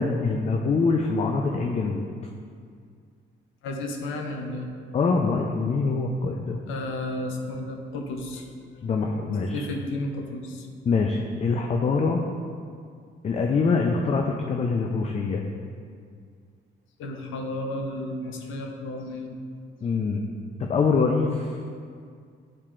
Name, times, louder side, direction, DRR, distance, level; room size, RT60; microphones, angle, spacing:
voice 1, 0.0-2.1 4.9-6.6 8.8-9.6 10.9-12.2 13.2-15.4 19.8-20.3 20.6-21.6, left 4 dB, 35° left, 2 dB, 0.4 m, -24 dB
voice 2, 3.6-4.7 6.7-8.8 9.5-10.7 17.0-19.4, left 1 dB, 90° left, 3 dB, 0.7 m, -33 dB
8.7 x 4.4 x 2.5 m, 2.2 s
cardioid pair, 90°, 20 cm